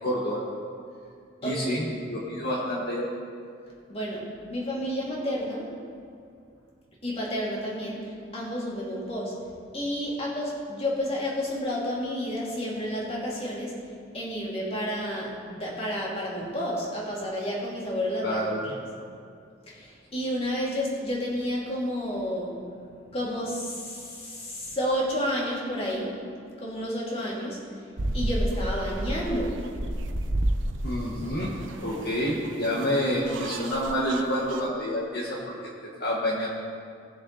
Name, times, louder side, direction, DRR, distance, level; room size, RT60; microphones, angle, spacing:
voice 1, 0.0-0.4 1.4-3.1 18.2-18.7 30.8-31.5 31.8-35.6 36.0-36.5, equal, 55° left, -4 dB, 1.5 m, -28 dB
voice 2, 1.4-1.8 3.9-5.7 7.0-9.4 9.7-13.7 14.1-18.4 18.6-18.7 19.8-19.9 20.1-22.8 23.1-26.2 26.6-27.6 28.1-29.7, equal, 30° left, -4 dB, 2.6 m, -30 dB
sound 1, 28.0-34.7, right 1 dB, 75° right, 0.8 m, -31 dB
19.0 x 6.8 x 4.0 m, 2.4 s
head